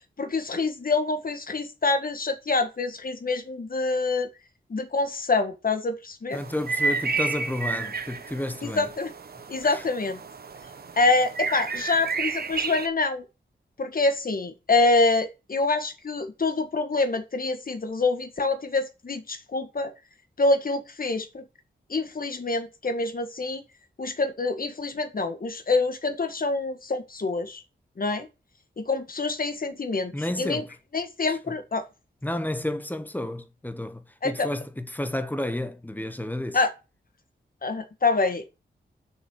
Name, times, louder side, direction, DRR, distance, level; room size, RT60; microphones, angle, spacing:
voice 1, 0.2-4.3 4.7-6.4 8.7-9.1 9.5-10.2 11.0-13.2 13.8-19.9 20.4-21.4 21.9-23.6 24.0-27.6 28.0-28.3 28.8-30.6 30.9-31.9 34.2-34.5 36.5-36.7 37.6-38.5, left 3 dB, 50° left, 1.7 m, -26 dB
voice 2, 6.3-8.9 9.6-9.8 30.1-30.7 31.3-31.4 32.2-36.6, left 1 dB, 10° left, 1.1 m, -31 dB
sound 1, 6.3-12.9, right 4 dB, 55° right, 1.1 m, -31 dB
6.7 x 6.2 x 6.3 m
wide cardioid pair, 85°, 19 cm